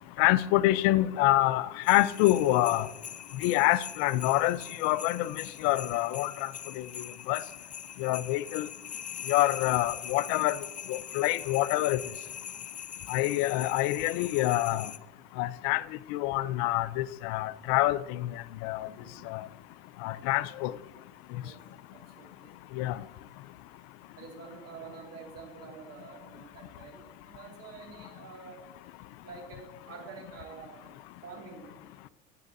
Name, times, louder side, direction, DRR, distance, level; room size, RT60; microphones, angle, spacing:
voice 1, 0.2-2.9 3.4-6.5 6.8-6.9 7.3-7.4 8.0-8.7 9.3-10.6 10.9-12.0 13.1-14.9 15.4-15.8 16.1-18.3 18.6-18.9 19.3-19.4 20.0-20.7 22.8-23.0, left 16 dB, 70° left, 0.6 m, -26 dB
sound 1, 1.8-15.0, left 9 dB, 25° left, 0.4 m, -42 dB
voice 2, 18.9-19.4 21.4-21.6 21.9-22.6 24.2-28.7 29.2-31.8, right 5 dB, 45° right, 2.4 m, -48 dB
21.0 x 7.5 x 2.7 m
hypercardioid pair, 85°, 33 cm